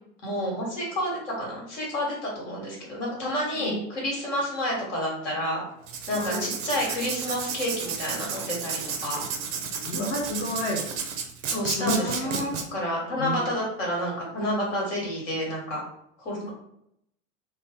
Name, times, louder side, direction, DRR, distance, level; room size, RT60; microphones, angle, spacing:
voice 1, 0.2-5.6 6.1-9.2 11.5-12.4 12.7-15.8 16.2-16.5, equal, 60° left, -3 dB, 1.4 m, -29 dB
voice 2, 3.5-3.8 6.2-6.5 9.8-10.8 11.8-12.6 13.2-13.4 16.4-16.5, left 1 dB, 25° left, 0 dB, 0.4 m, -30 dB
Writing, 5.8-12.6, right 6 dB, 30° right, 0.4 m, -32 dB
2.5 x 2.1 x 3.4 m, 0.74 s
figure-of-eight pair, 85°, 41 cm